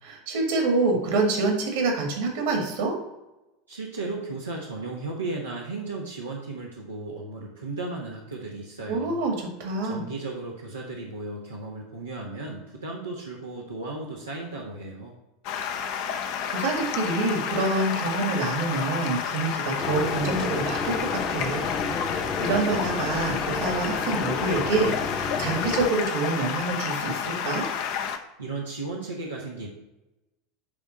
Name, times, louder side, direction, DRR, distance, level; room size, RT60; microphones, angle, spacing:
voice 1, 0.0-3.0 8.9-10.0 16.5-21.7 21.9-27.7, right 3 dB, 60° right, 2 dB, 2.1 m, -27 dB
voice 2, 3.7-9.2 9.8-15.1 28.4-29.7, right 3 dB, 85° right, -4 dB, 1.2 m, -35 dB
Stream, 15.4-28.2, left 8 dB, 55° left, 0.8 m, -30 dB
sound 1, 19.8-25.9, left 4 dB, 35° left, 1.1 m, -31 dB
10.0 x 3.6 x 5.2 m, 0.99 s
figure-of-eight pair, 80°, 0 cm